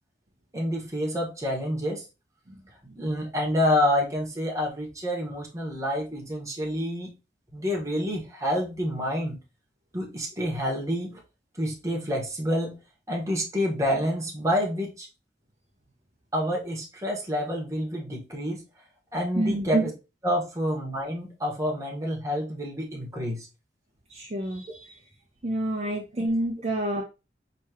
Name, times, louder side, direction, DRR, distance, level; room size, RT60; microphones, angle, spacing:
voice 1, 0.5-2.0 2.8-7.1 7.5-9.4 9.9-11.2 11.6-12.7 13.1-15.1 16.3-18.6 19.1-19.9 20.2-23.5, equal, 20° right, -1 dB, 1.2 m, -28 dB
voice 2, 19.4-19.7 24.1-24.9 25.4-27.0, right 1 dB, 40° right, -2 dB, 0.8 m, -29 dB
4.7 x 3.1 x 2.9 m, 0.29 s
head